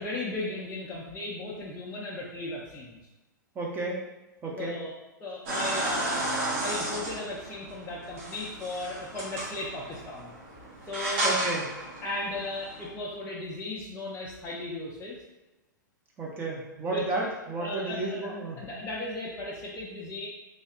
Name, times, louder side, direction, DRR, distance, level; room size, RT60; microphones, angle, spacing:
voice 1, 0.0-3.0 4.5-4.9 5.2-6.3 6.6-10.3 10.9-11.3 12.0-15.2 16.8-17.3 17.6-20.3, left 2 dB, 15° left, -6 dB, 0.6 m, -36 dB
voice 2, 3.5-4.0 4.4-4.8 11.2-11.7 16.2-18.6, right 3 dB, 20° right, -3 dB, 0.8 m, -32 dB
sound 1, 5.5-12.9, right 1 dB, 45° right, 1.2 m, -33 dB
3.3 x 3.1 x 2.8 m, 1.1 s
hypercardioid pair, 110°, 11 cm